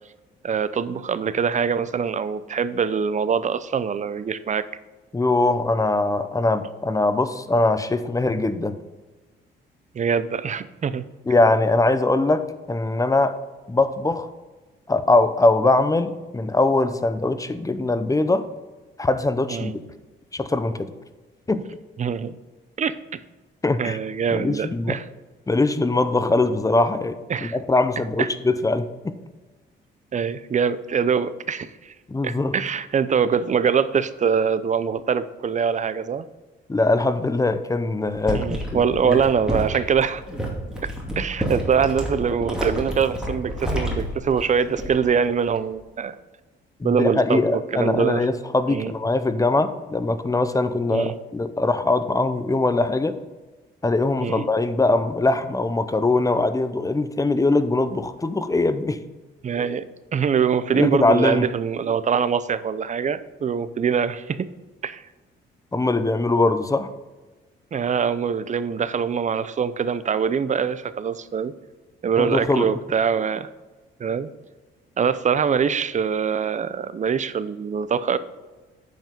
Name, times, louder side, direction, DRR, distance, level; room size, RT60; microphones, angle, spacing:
voice 1, 0.4-4.7 9.9-11.1 19.5-19.7 22.0-22.3 22.8-22.9 23.8-25.0 27.3-27.6 28.2-28.3 30.1-31.9 32.2-36.3 38.3-40.2 41.2-46.2 46.8-47.4 47.7-48.3 48.7-48.9 50.9-51.1 54.2-54.4 59.4-64.5 64.8-65.0 67.7-71.5 72.0-73.5 74.0-74.3 75.0-78.2, right 6 dB, 40° right, 14 dB, 0.5 m, -23 dB
voice 2, 5.1-8.8 11.3-13.4 13.7-14.3 14.9-18.5 19.0-19.8 20.3-20.9 21.5-21.6 23.6-24.0 24.3-25.0 25.5-29.2 32.1-32.6 36.7-39.2 46.8-53.2 53.8-59.0 60.7-61.5 65.7-66.9 72.2-72.7, left 2 dB, 15° left, 11 dB, 0.7 m, -22 dB
sound 1, 38.1-45.1 45.4-45.8, equal, 5° right, 2.5 m, -30 dB
9.1 x 5.3 x 5.2 m, 1.2 s
cardioid pair, 90°, 20 cm